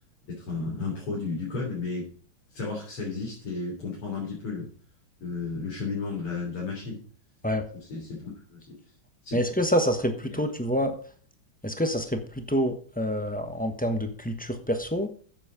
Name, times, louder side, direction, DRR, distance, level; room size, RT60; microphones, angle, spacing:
voice 1, 0.3-2.1 2.5-4.7 5.2-7.0 7.9-8.7 9.2-9.4 10.3-10.4, left 4 dB, 85° left, -4 dB, 4.4 m, -33 dB
voice 2, 9.3-10.9 11.6-15.1, equal, 10° left, 6 dB, 0.5 m, -27 dB
10.0 x 8.0 x 5.1 m, 0.43 s
omnidirectional pair, 2.4 m